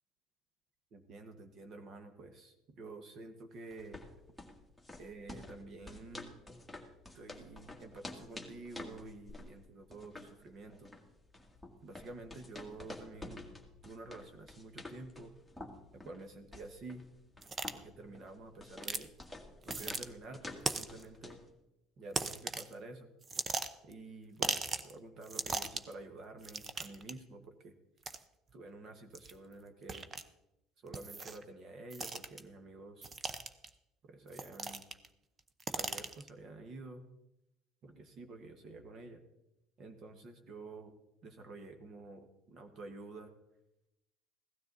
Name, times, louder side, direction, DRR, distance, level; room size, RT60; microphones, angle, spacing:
voice 1, 0.9-4.0 5.0-6.3 7.1-10.9 11.8-13.4 13.8-15.3 16.0-17.0 17.8-19.1 19.6-21.4 22.0-23.1 23.8-24.6 24.8-27.7 28.5-30.1 30.8-33.1 34.1-34.8 35.7-37.0 37.8-39.2 39.8-40.9 41.2-43.3, right 2 dB, 45° right, 7 dB, 1.5 m, -49 dB
sound 1, 3.7-21.5, left 2 dB, ahead, 1.8 m, -50 dB
sound 2, 17.4-17.7 18.8-19.1 19.6-20.1 20.7-21.0 22.1-22.7 23.2-23.9 24.4-24.9 25.2-25.9 26.4-27.1 28.0-28.2 29.1-29.3 29.9-30.2 30.9-31.4 31.9-32.4 33.0-33.7 34.3-35.1 35.4-36.3, right 4 dB, 25° right, 0.7 m, -38 dB
16.5 x 12.5 x 4.1 m, 0.90 s
cardioid pair, 135°, 0 cm